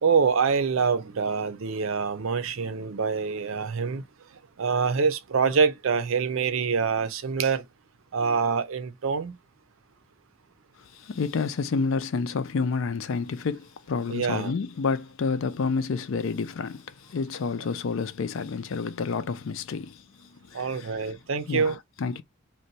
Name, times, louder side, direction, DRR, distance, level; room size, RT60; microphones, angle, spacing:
voice 1, 0.0-4.0 4.6-7.6 8.1-9.3 14.1-14.5 20.5-21.8, right 5 dB, 75° right, 0.5 m, -25 dB
voice 2, 10.9-20.9 21.5-22.2, left 4 dB, 70° left, 0.4 m, -29 dB
2.6 x 2.2 x 3.9 m
head